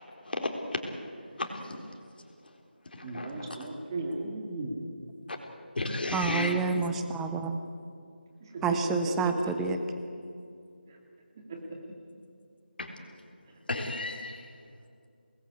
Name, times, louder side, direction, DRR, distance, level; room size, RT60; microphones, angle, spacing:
voice 1, 0.3-0.8 1.4-1.8 3.0-3.5 5.8-6.5 12.8-12.9 13.7-14.4, left 2 dB, 60° left, 2 dB, 4.0 m, -33 dB
voice 2, 3.0-4.7 8.5-8.8 9.2-9.3 9.6-9.8 11.5-11.6, right 3 dB, 20° right, 1 dB, 2.4 m, -35 dB
voice 3, 6.1-7.6 8.6-9.8, right 5 dB, 5° right, 7 dB, 0.5 m, -29 dB
25.0 x 20.0 x 8.5 m, 2.4 s
figure-of-eight pair, 170°, 6 cm